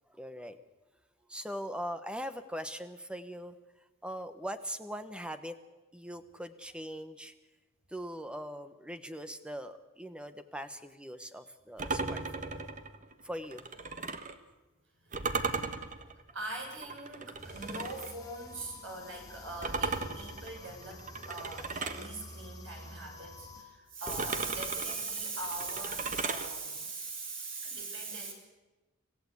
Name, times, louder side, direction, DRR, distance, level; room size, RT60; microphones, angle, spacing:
voice 1, 0.1-0.6 1.3-3.6 4.0-5.6 5.9-7.3 7.9-12.5 13.2-13.7, equal, 5° right, 9 dB, 1.1 m, -41 dB
sound 1, 11.8-14.4 15.1-18.1 19.6-22.1 24.1-26.5, right 4 dB, 40° right, 1.3 m, -37 dB
voice 2, 16.3-28.3, right 3 dB, 65° right, 1 dB, 7.0 m, -40 dB
sound 2, 17.3-23.6, left 2 dB, 15° left, 5.7 m, -50 dB
26.5 x 15.5 x 8.3 m, 1.1 s
head